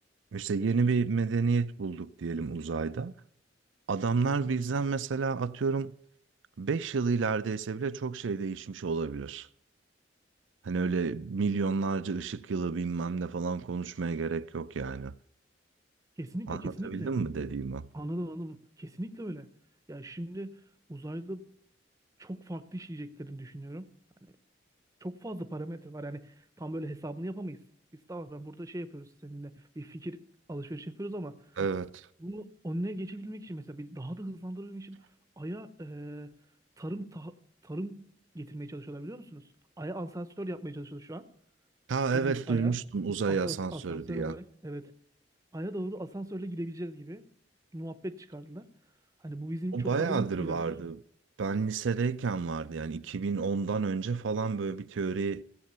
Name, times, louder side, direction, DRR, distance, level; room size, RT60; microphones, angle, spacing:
voice 1, 0.3-3.1 3.9-5.9 6.6-9.5 10.6-15.1 16.5-17.9 31.6-32.1 41.9-44.3 49.7-51.0 51.4-55.4, right 4 dB, 85° right, 0.5 m, -30 dB
voice 2, 16.2-17.1 17.9-19.5 19.9-21.5 22.2-23.9 25.0-27.6 28.1-30.2 30.5-31.4 32.2-35.1 35.4-36.4 36.8-37.4 37.6-39.4 39.8-41.3 42.1-42.7 43.1-44.9 45.5-47.3 47.7-48.7 49.2-50.8, right 1 dB, 15° right, 0.7 m, -39 dB
16.5 x 7.6 x 6.7 m
head